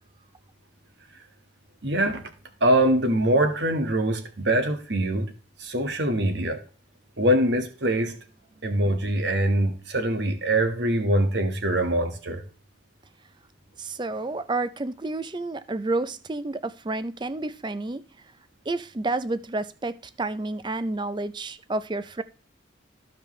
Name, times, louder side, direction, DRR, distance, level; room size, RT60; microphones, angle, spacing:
voice 1, 1.8-2.2 2.6-5.3 5.6-6.6 7.2-8.2 8.6-12.4, right 1 dB, 60° right, 1.6 m, -23 dB
voice 2, 13.8-18.0 18.7-22.2, right 2 dB, 25° right, 0.4 m, -30 dB
14.5 x 5.1 x 3.2 m
head